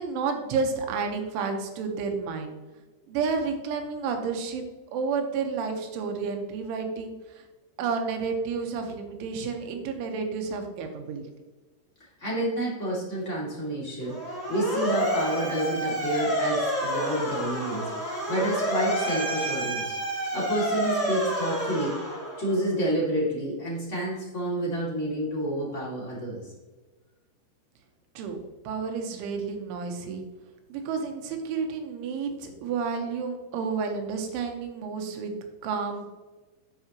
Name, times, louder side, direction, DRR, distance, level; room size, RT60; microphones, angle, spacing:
voice 1, 0.0-2.5 3.1-4.6 4.9-7.4 7.8-11.3 28.2-28.4 28.7-30.2 30.7-35.3 35.6-36.1, right 5 dB, 85° right, 4 dB, 3.6 m, -30 dB
voice 2, 12.2-22.0 22.4-26.5, right 1 dB, 20° left, -6 dB, 2.1 m, -29 dB
Motor vehicle (road) / Siren, 14.0-22.6, equal, 5° right, 1.9 m, -29 dB
9.8 x 8.6 x 3.1 m, 1.2 s
omnidirectional pair, 5.3 m